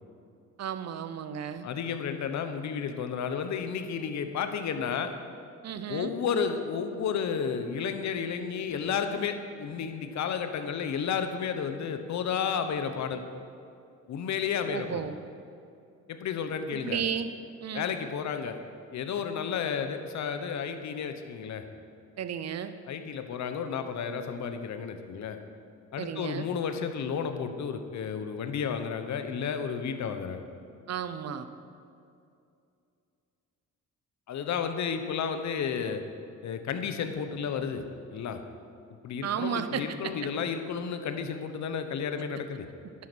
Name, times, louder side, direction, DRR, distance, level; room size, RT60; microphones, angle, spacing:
voice 1, 0.6-1.7 5.6-6.1 14.7-15.1 16.7-17.3 17.6-17.9 22.2-22.7 26.0-26.5 30.9-31.5 39.2-40.1, right 8 dB, 60° right, 10 dB, 0.9 m, -33 dB
voice 2, 1.6-5.1 5.9-13.2 14.1-15.1 16.1-17.0 17.7-18.6 18.9-21.7 22.9-25.4 25.9-30.4 34.3-36.0 36.4-37.8 38.1-38.4 39.0-42.6, left 7 dB, 65° left, 8 dB, 1.1 m, -32 dB
11.5 x 9.7 x 6.3 m, 2.5 s
cardioid pair, 90°, 30 cm